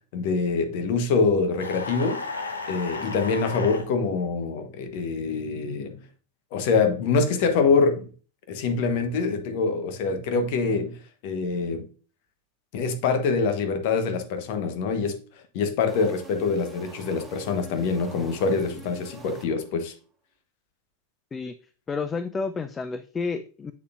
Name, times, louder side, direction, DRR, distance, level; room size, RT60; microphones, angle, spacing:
voice 1, 0.1-2.2 2.7-6.0 6.5-8.1 8.5-11.0 11.2-11.9 12.7-15.2 15.5-19.9, left 4 dB, 55° left, 1.1 m, -25 dB
sound 1, 1.6-3.9, left 3 dB, 85° left, 0.9 m, -34 dB
sound 2, 15.9-19.9, right 3 dB, 15° right, 1.3 m, -46 dB
voice 2, 21.9-23.7, left 4 dB, 20° left, 0.4 m, -30 dB
7.4 x 6.7 x 2.5 m
figure-of-eight pair, 90°, 0 cm